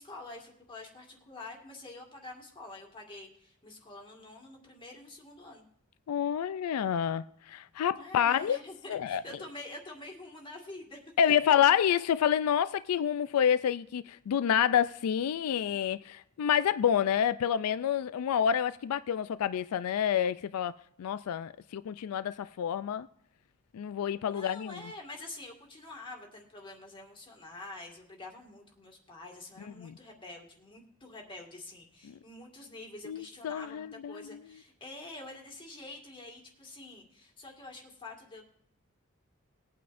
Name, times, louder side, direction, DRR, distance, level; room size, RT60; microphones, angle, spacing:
voice 1, 0.0-5.7 8.0-11.5 24.3-38.4, left 2 dB, 25° left, 1.9 m, -47 dB
voice 2, 6.1-8.6 8.9-9.2 11.2-20.7 21.0-23.1 23.7-24.8 29.8-29.9 32.1-32.2 33.0-34.4, left 9 dB, 90° left, 0.4 m, -28 dB
19.5 x 9.2 x 2.6 m
head